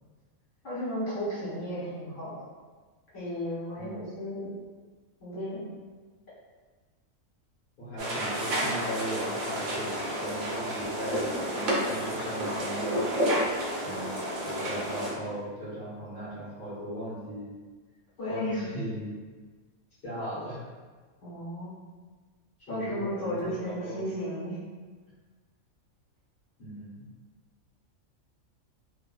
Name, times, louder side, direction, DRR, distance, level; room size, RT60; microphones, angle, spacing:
voice 1, 0.6-2.3 3.1-4.5 5.2-5.7 18.2-18.7 21.2-21.8 22.7-24.6, equal, 60° left, -10 dB, 1.6 m, -34 dB
voice 2, 3.8-4.1 7.8-13.1 13.8-17.5 18.2-19.1 20.0-20.6 22.7-24.0 26.6-27.0, equal, 45° left, -11 dB, 1.2 m, -38 dB
sound 1, 8.0-15.1, right 1 dB, 80° right, 1.1 m, -30 dB
3.0 x 2.4 x 2.3 m, 1.4 s
omnidirectional pair, 1.4 m